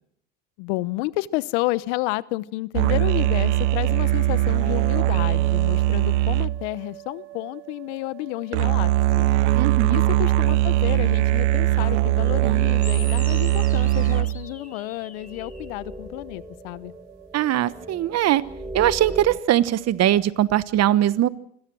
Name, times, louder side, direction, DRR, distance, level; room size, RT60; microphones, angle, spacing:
voice 1, 0.6-9.3 9.9-16.9, left 20 dB, 75° left, 19 dB, 1.0 m, -30 dB
sound 1, 2.7-7.7 8.5-14.5, right 17 dB, 80° right, 0.7 m, -21 dB
voice 2, 9.6-10.0 17.3-18.4 18.7-21.3, right 12 dB, 45° right, 16 dB, 1.2 m, -21 dB
sound 2, 12.8-15.8, left 4 dB, 25° left, 4.4 m, -43 dB
sound 3, 14.3-19.4, right 1 dB, 10° right, 1.9 m, -39 dB
25.5 x 17.5 x 6.2 m, 0.71 s
supercardioid pair, 95°, 35 cm